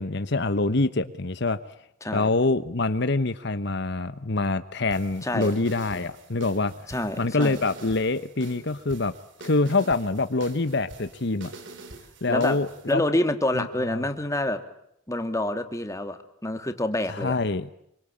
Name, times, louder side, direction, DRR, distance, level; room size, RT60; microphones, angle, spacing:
voice 1, 0.0-1.6 2.1-6.7 7.2-9.1 9.4-11.5 12.2-13.0 13.5-14.0 17.1-17.7, left 3 dB, 60° left, 11 dB, 1.1 m, -25 dB
sound 1, 4.9-12.9, right 3 dB, 65° right, 4.3 m, -45 dB
voice 2, 6.9-7.6 12.3-12.6 12.9-14.6 15.1-17.4, left 1 dB, 15° left, 7 dB, 2.4 m, -27 dB
26.5 x 24.5 x 8.7 m, 0.76 s
head